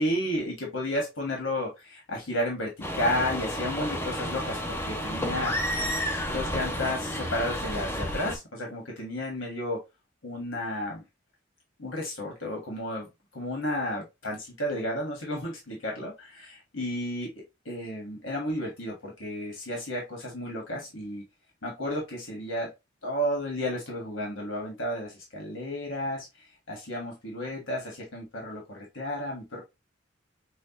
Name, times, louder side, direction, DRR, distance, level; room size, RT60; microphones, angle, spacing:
voice 1, 0.0-5.8 6.1-9.8 10.2-11.0 11.8-13.1 13.3-17.3 17.6-21.2 21.6-22.7 23.0-29.6, left 1 dB, 85° left, 1.5 m, -32 dB
sound 1, 2.8-8.4, equal, 10° left, 0.6 m, -31 dB
6.3 x 2.3 x 2.9 m
head